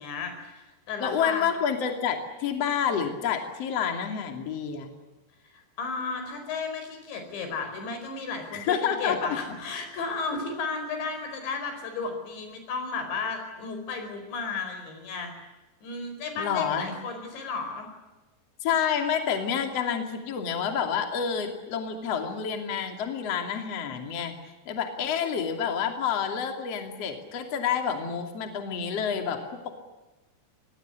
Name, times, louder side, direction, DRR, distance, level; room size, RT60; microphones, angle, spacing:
voice 1, 0.0-1.5 5.5-15.3 15.8-17.9, left 4 dB, 85° left, 6 dB, 7.0 m, -34 dB
voice 2, 1.0-4.9 8.5-9.2 16.4-17.0 18.6-24.3 24.7-29.8, left 7 dB, 40° left, 5 dB, 3.3 m, -28 dB
25.5 x 19.0 x 9.9 m, 1.1 s
omnidirectional pair, 5.0 m